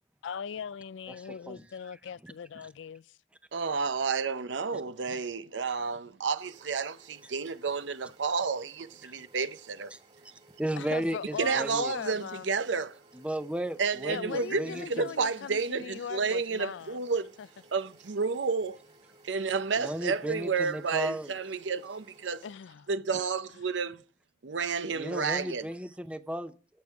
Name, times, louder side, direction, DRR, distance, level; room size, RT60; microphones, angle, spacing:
voice 1, 0.2-3.2 10.8-12.6 14.1-17.0 17.4-17.5 22.4-23.2, left 7 dB, 85° left, 0.4 m, -40 dB
voice 2, 1.1-1.7 2.2-2.3 9.0-9.1 9.9-10.0 10.6-11.9 13.1-15.1 19.8-21.3 24.9-26.5, right 1 dB, 5° right, 0.7 m, -35 dB
voice 3, 3.5-9.9 11.4-13.0 13.8-17.3 17.7-18.8 19.2-22.4 22.9-24.0 24.4-25.6, right 5 dB, 85° right, 0.7 m, -31 dB
sound 1, 6.4-22.5, right 2 dB, 35° right, 2.4 m, -59 dB
13.5 x 8.3 x 3.5 m
head